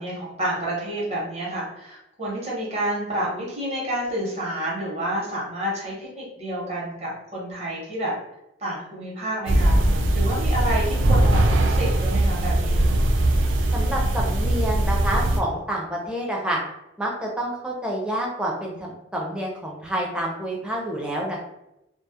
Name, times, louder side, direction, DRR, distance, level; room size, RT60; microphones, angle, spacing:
voice 1, 0.0-8.1 8.6-9.8 10.1-12.9, right 1 dB, 35° right, -5 dB, 0.9 m, -29 dB
sound 1, 9.5-15.4, right 1 dB, 80° right, 0.4 m, -20 dB
voice 2, 13.7-16.6 17.0-21.4, right 1 dB, 5° right, -2 dB, 0.4 m, -28 dB
2.2 x 2.0 x 2.7 m, 0.87 s
head